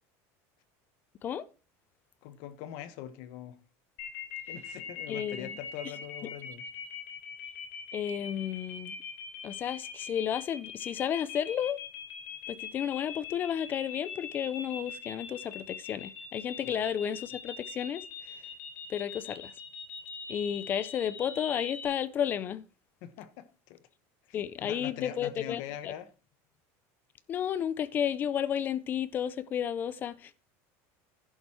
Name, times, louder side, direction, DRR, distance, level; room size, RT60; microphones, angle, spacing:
voice 1, 2.2-3.6 4.5-6.6 16.6-16.8 23.0-23.8 24.3-26.1, left 11 dB, 55° left, 1.1 m, -42 dB
sound 1, 4.0-21.9, left 7 dB, 70° left, 3.3 m, -42 dB
voice 2, 5.1-5.5 7.9-8.9 9.4-11.8 12.5-18.4 18.9-19.5 20.3-22.6 24.3-25.9 27.3-30.3, left 9 dB, 25° left, 0.4 m, -32 dB
11.0 x 7.9 x 4.3 m
cardioid pair, 175°, 8 cm